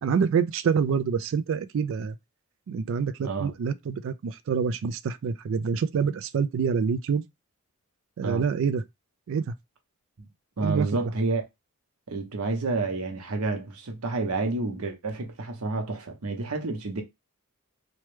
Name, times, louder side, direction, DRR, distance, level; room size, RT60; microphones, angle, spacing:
voice 1, 0.0-2.2 2.7-7.2 8.2-8.8 9.3-9.5 10.6-10.9, right 6 dB, 60° right, 0.3 m, -26 dB
voice 2, 10.6-11.4 12.1-17.0, right 3 dB, 85° right, 0.8 m, -29 dB
3.0 x 2.2 x 3.1 m
head